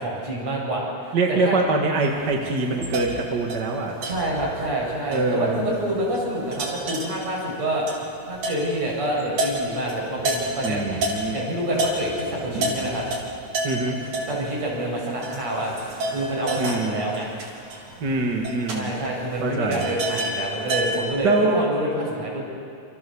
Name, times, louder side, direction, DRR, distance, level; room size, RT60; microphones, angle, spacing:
voice 1, 0.0-1.6 4.0-7.9 8.2-10.9 11.3-13.0 14.3-15.7 16.1-17.3 18.7-22.4, right 1 dB, 60° right, -3 dB, 8.7 m, -27 dB
voice 2, 1.1-3.9 5.1-5.6 10.6-11.4 13.6-14.0 16.6-17.0 18.0-19.0 19.4-19.9 21.2-21.6, right 3 dB, 35° right, 0 dB, 2.3 m, -24 dB
sound 1, 2.0-11.4 11.8-21.1, right 1 dB, 75° right, 5.1 m, -31 dB
28.0 x 27.5 x 7.1 m, 2.4 s
omnidirectional pair, 3.5 m